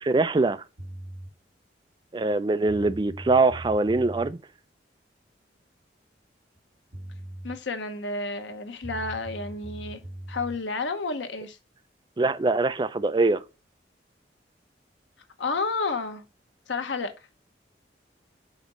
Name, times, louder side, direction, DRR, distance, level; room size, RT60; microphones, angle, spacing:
voice 1, 0.0-0.6 2.1-4.4 12.2-13.4, right 3 dB, 25° right, 0.4 m, -23 dB
sound 1, 0.8-1.3 2.3-2.4 2.7-4.3 6.6-6.7 6.9-7.6 8.8-10.6, right 1 dB, 60° right, 1.3 m, -40 dB
voice 2, 7.4-10.0 10.3-11.6 15.4-16.2 16.7-17.3, left 3 dB, 90° left, 1.0 m, -31 dB
5.1 x 4.1 x 5.3 m
head